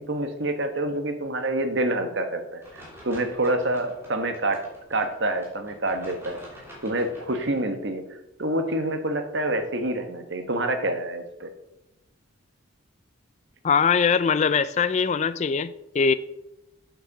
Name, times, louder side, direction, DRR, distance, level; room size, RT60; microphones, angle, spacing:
voice 1, 0.0-4.6 4.9-6.4 6.8-11.5, right 1 dB, 55° right, 7 dB, 1.2 m, -27 dB
sound 1, 2.6-7.6, equal, 10° right, 2.9 m, -47 dB
voice 2, 13.6-16.1, left 6 dB, 35° left, 15 dB, 0.3 m, -22 dB
8.1 x 7.1 x 6.0 m, 0.92 s
head